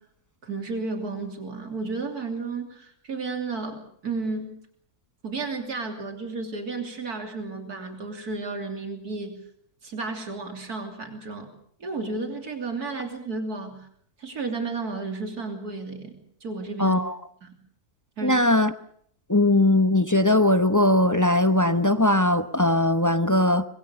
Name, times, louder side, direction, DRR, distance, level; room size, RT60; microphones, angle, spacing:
voice 1, 0.4-4.5 5.2-9.4 9.8-11.5 11.8-13.9 14.2-17.0 17.4-17.6 18.2-18.4, right 3 dB, 90° right, 3.6 m, -33 dB
voice 2, 16.8-17.2 18.2-18.7 19.3-23.6, left 1 dB, 15° left, 0.7 m, -20 dB
25.0 x 22.0 x 6.8 m
omnidirectional pair, 1.6 m